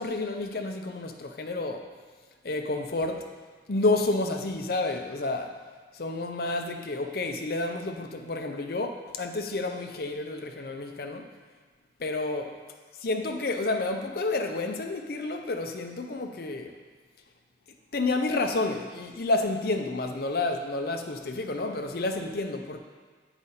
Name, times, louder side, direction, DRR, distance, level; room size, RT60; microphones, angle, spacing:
voice 1, 0.0-1.9 2.4-3.3 3.7-5.5 5.9-11.3 12.0-12.4 13.0-16.7 17.9-22.8, left 2 dB, 55° left, 5 dB, 0.6 m, -30 dB
8.1 x 4.9 x 4.2 m, 1.5 s
head